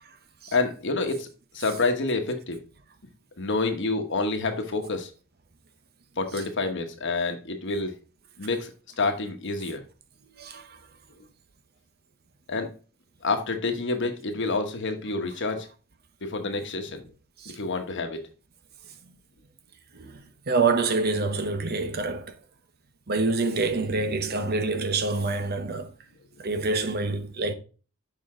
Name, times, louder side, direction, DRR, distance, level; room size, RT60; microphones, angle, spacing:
voice 1, 0.5-1.3 1.5-2.6 3.4-5.1 6.2-7.9 8.4-8.7 9.0-9.8 12.5-12.7 13.2-15.7 16.2-17.0 17.5-18.2, left 3 dB, 55° left, 1.2 m, -28 dB
voice 2, 10.3-10.8 17.4-17.6 19.9-22.3 23.1-25.9 26.4-27.5, right 3 dB, 45° right, 0.8 m, -27 dB
6.7 x 5.1 x 3.6 m
head